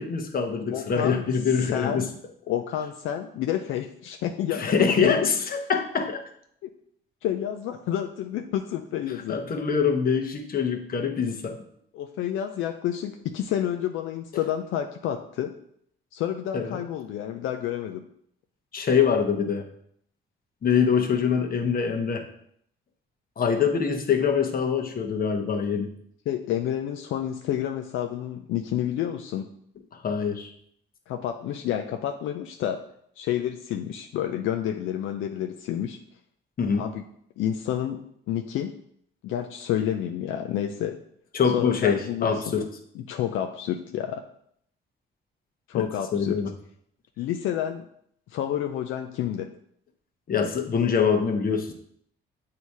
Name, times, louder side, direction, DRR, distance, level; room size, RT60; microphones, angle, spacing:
voice 1, 0.0-2.1 4.5-6.2 9.3-11.6 16.5-16.8 18.7-19.7 20.6-22.2 23.4-25.9 29.9-30.5 36.6-36.9 41.3-42.7 45.7-45.9 46.1-46.5 50.3-51.7, left 6 dB, 50° left, 4 dB, 1.0 m, -24 dB
voice 2, 0.7-1.2 1.6-2.1 2.5-5.3 6.6-6.7 7.2-9.4 11.9-15.5 16.1-18.1 26.3-29.5 31.1-32.9 33.2-36.0 36.8-37.0 37.4-38.7 39.2-41.0 41.5-42.3 43.0-44.2 45.7-46.4 47.2-47.9 48.3-49.5, left 10 dB, 80° left, 6 dB, 0.5 m, -29 dB
7.8 x 2.9 x 4.7 m, 0.67 s
cardioid pair, 90°, 20 cm